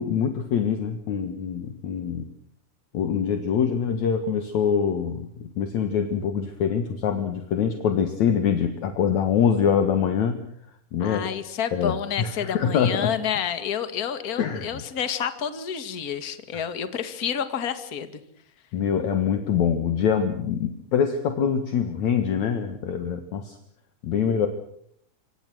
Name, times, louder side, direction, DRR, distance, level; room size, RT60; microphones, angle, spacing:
voice 1, 0.0-2.3 2.9-10.4 10.9-11.3 11.7-13.1 14.4-14.8 16.5-16.6 18.7-23.6 24.0-24.5, left 7 dB, 60° left, 7 dB, 2.7 m, -24 dB
voice 2, 11.0-18.2, left 8 dB, 35° left, 10 dB, 1.8 m, -29 dB
26.5 x 25.5 x 6.3 m, 0.67 s
omnidirectional pair, 3.9 m